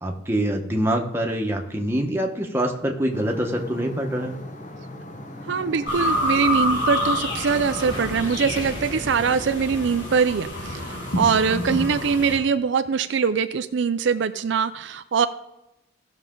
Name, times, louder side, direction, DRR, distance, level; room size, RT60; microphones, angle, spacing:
voice 1, 0.0-4.4, right 1 dB, 10° right, 1 dB, 1.1 m, -25 dB
sound 1, 3.1-8.9, left 1 dB, 40° left, 1.0 m, -39 dB
sound 2, 5.0-10.5, equal, 20° left, 1.7 m, -40 dB
voice 2, 5.5-15.3, right 6 dB, 70° right, 10 dB, 0.4 m, -23 dB
sound 3, 5.9-12.4, left 1 dB, 70° left, 4.0 m, -27 dB
16.0 x 6.5 x 3.8 m, 0.89 s
head